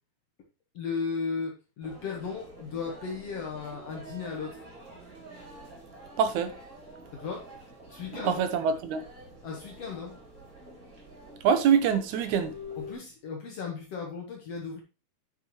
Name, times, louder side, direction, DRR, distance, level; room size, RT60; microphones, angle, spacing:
voice 1, 0.7-4.6 7.1-7.5 7.9-8.4 9.4-10.2 12.8-14.8, left 5 dB, 60° left, 2.3 m, -35 dB
sound 1, 1.8-12.9, equal, 30° right, 3.6 m, -47 dB
voice 2, 6.2-6.5 8.1-9.0 11.4-12.6, right 7 dB, 85° right, 2.4 m, -25 dB
9.5 x 6.8 x 3.1 m
omnidirectional pair, 3.4 m